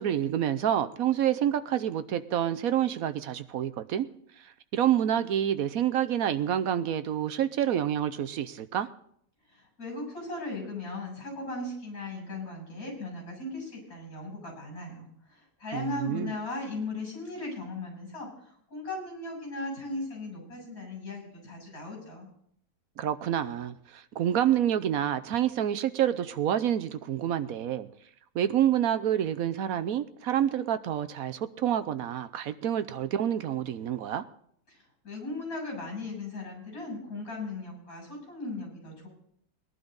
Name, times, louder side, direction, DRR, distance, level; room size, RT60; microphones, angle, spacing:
voice 1, 0.0-4.1 4.4-8.9 15.7-16.3 23.0-27.9 28.3-34.2, right 10 dB, 65° right, 12 dB, 1.0 m, -28 dB
voice 2, 9.5-22.3 34.7-34.8 35.0-39.1, left 2 dB, 55° left, 1 dB, 7.9 m, -37 dB
20.0 x 11.5 x 3.9 m, 0.67 s
omnidirectional pair, 1.9 m